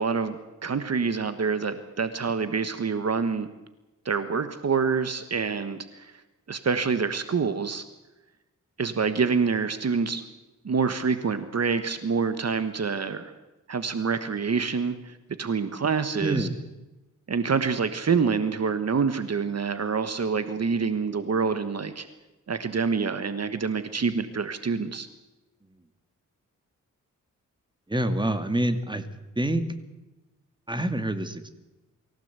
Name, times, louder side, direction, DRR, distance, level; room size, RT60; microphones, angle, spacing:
voice 1, 0.0-3.5 4.0-6.1 6.5-7.8 8.8-10.2 10.6-13.3 13.7-16.5 17.3-22.1 22.5-25.1, right 5 dB, 50° right, 10 dB, 1.4 m, -26 dB
voice 2, 16.2-16.6 27.9-29.0 29.4-29.7 30.7-31.5, right 1 dB, 15° right, 9 dB, 2.2 m, -26 dB
24.0 x 16.5 x 8.2 m, 1.1 s
wide cardioid pair, 95°, 32 cm